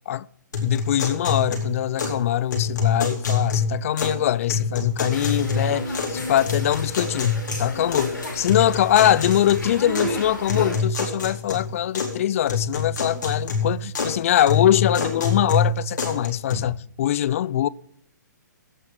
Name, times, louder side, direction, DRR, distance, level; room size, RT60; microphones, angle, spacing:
sound 1, 0.5-2.2 2.5-4.2 4.5-6.2 6.5-8.1 8.5-10.1 10.5-12.2 12.5-14.2 14.5-16.5, left 4 dB, 75° left, 4.2 m, -26 dB
voice 1, 0.6-17.7, left 11 dB, 45° left, 0.4 m, -22 dB
sound 2, 5.1-10.8, left 1 dB, 90° left, 5.1 m, -32 dB
17.5 x 6.5 x 6.0 m
figure-of-eight pair, 130°, 10 cm